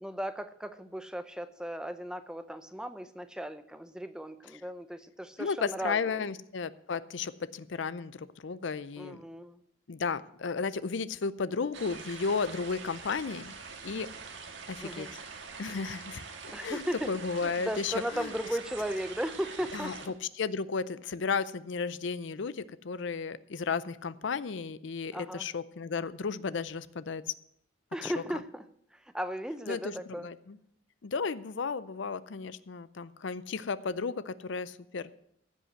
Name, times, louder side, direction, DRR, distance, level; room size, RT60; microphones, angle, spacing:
voice 1, 0.0-6.3 9.0-9.6 14.8-15.1 16.5-17.1 17.4-20.1 25.1-25.4 27.9-28.6 28.9-30.3, equal, 5° right, 10 dB, 0.5 m, -36 dB
voice 2, 5.4-9.2 9.9-13.5 13.8-14.1 14.7-15.1 15.6-16.2 16.6-18.3 19.7-27.3 28.0-28.2 29.7-30.6 31.0-35.1, left 5 dB, 65° left, 15 dB, 0.5 m, -34 dB
sound 1, 11.7-20.1, right 5 dB, 65° right, 1.6 m, -44 dB
15.5 x 5.5 x 7.8 m, 0.70 s
head